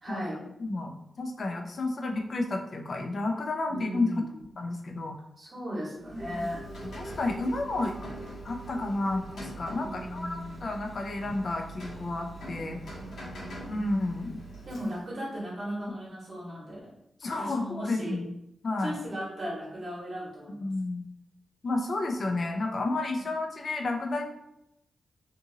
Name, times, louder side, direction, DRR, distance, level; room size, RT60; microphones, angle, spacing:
voice 1, 0.0-0.4 3.7-4.2 5.4-6.6 9.8-10.7 13.0-13.7 14.6-16.9 17.4-18.2 18.8-20.7, equal, 40° right, -6 dB, 1.3 m, -37 dB
voice 2, 0.6-4.1 4.6-5.2 6.3-6.4 6.8-8.0 8.4-12.8 13.7-14.4 17.2-18.4 18.6-18.9 20.5-21.0 21.6-24.3, left 2 dB, 45° left, 3 dB, 0.4 m, -31 dB
Rain, 6.0-15.2, right 1 dB, 80° left, 1.0 m, -44 dB
sound 1, 6.2-12.6, right 1 dB, 20° right, 0.4 m, -48 dB
2.7 x 2.5 x 2.7 m, 0.81 s
wide cardioid pair, 145°, 0 cm